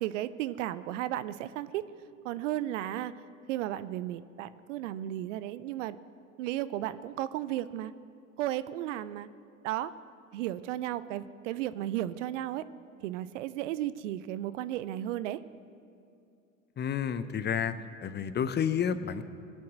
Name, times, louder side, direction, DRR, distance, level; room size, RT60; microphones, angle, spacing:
voice 1, 0.0-1.9 2.2-3.2 3.5-6.0 6.4-7.9 8.4-9.3 9.6-9.9 10.3-12.6 13.0-15.4, right 13 dB, 65° right, 15 dB, 0.7 m, -34 dB
voice 2, 16.8-17.7 18.0-19.2, left 8 dB, 25° left, 13 dB, 0.8 m, -30 dB
22.5 x 8.5 x 7.4 m, 2.5 s
hypercardioid pair, 80°, 40 cm